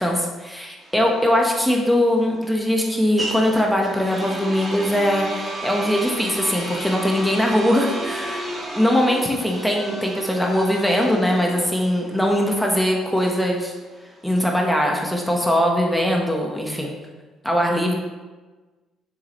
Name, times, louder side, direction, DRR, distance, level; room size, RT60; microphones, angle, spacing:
voice 1, 0.0-8.4 8.7-13.7 14.2-16.9 17.4-18.0, equal, 5° left, 0 dB, 1.3 m, -21 dB
sound 1, 0.8-14.6, right 1 dB, 25° right, 2.1 m, -33 dB
7.2 x 6.6 x 3.2 m, 1.3 s
supercardioid pair, 70°, 0 cm